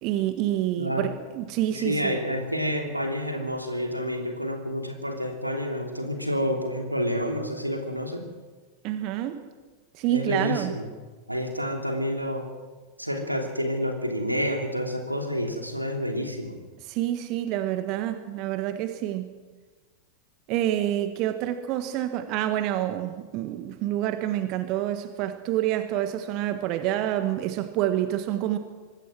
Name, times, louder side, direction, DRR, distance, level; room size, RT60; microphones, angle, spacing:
voice 1, 0.0-2.2 8.8-9.4 9.9-10.7 16.8-19.3 20.5-28.6, right 13 dB, 40° right, 9 dB, 1.5 m, -27 dB
voice 2, 0.8-1.1 1.7-8.2 10.1-10.9 11.3-12.5 13.0-16.6, equal, 90° right, 3 dB, 3.0 m, -29 dB
25.5 x 20.0 x 6.2 m, 1.4 s
figure-of-eight pair, 90°, 0 cm